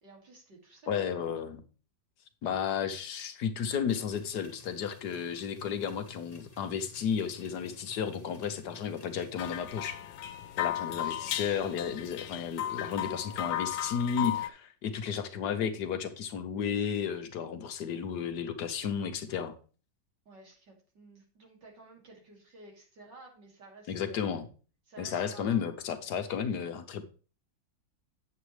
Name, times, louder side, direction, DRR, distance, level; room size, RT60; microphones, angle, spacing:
voice 1, 0.0-1.1 10.7-11.4 20.3-24.5 24.9-25.7, right 2 dB, 70° right, -1 dB, 3.1 m, -54 dB
voice 2, 0.9-1.6 2.4-10.0 10.6-19.5 23.9-24.5 25.0-27.0, left 7 dB, 70° left, 8 dB, 1.4 m, -33 dB
sound 1, 3.9-9.6, left 4 dB, 25° left, 1.1 m, -54 dB
sound 2, 9.4-14.5, left 12 dB, 90° left, 1.3 m, -35 dB
8.2 x 7.5 x 3.2 m, 0.37 s
omnidirectional pair, 1.9 m